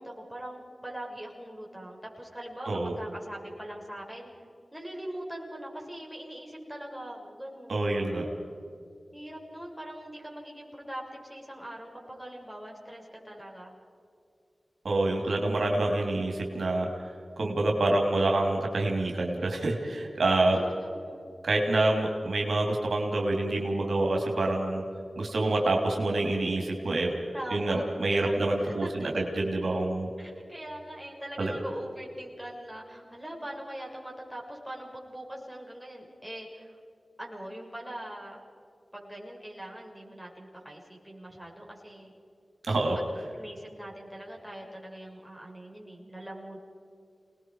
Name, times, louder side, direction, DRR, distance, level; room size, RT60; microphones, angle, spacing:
voice 1, 0.0-4.3 4.7-7.9 9.1-13.7 20.5-21.3 27.3-29.1 30.2-36.7 37.2-38.4 38.9-42.1 42.9-43.0 43.3-46.6, right 1 dB, 5° right, -2 dB, 6.2 m, -42 dB
voice 2, 7.7-8.2 14.8-16.9 17.4-20.6 21.4-24.8 25.2-27.1 27.5-30.1 31.4-31.5 42.6-43.0, right 2 dB, 85° right, 1 dB, 3.1 m, -27 dB
28.0 x 20.0 x 4.8 m, 2.4 s
cardioid pair, 50°, 0 cm